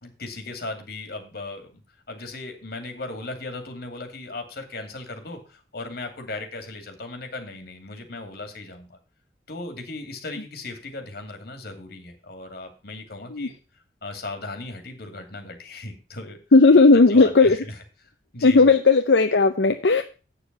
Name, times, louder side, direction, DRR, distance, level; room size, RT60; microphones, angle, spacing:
voice 1, 0.0-1.7 2.1-9.0 9.5-13.5 14.0-16.4 17.1-17.8 18.3-18.7, left 2 dB, 60° left, 6 dB, 2.5 m, -37 dB
voice 2, 16.5-17.6 18.4-20.0, left 3 dB, 85° left, 6 dB, 0.7 m, -15 dB
8.4 x 7.0 x 6.7 m, 0.33 s
head